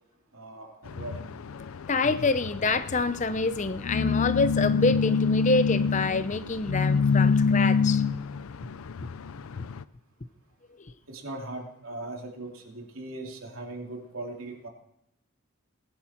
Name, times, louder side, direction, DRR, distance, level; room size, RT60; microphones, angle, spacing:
voice 1, 0.3-1.3 11.1-14.7, right 2 dB, 75° right, 2.8 m, -39 dB
sound 1, 0.8-9.8, left 5 dB, 75° left, 0.5 m, -27 dB
voice 2, 1.6-8.0, left 3 dB, 35° left, 0.6 m, -27 dB
20.0 x 11.0 x 4.4 m
head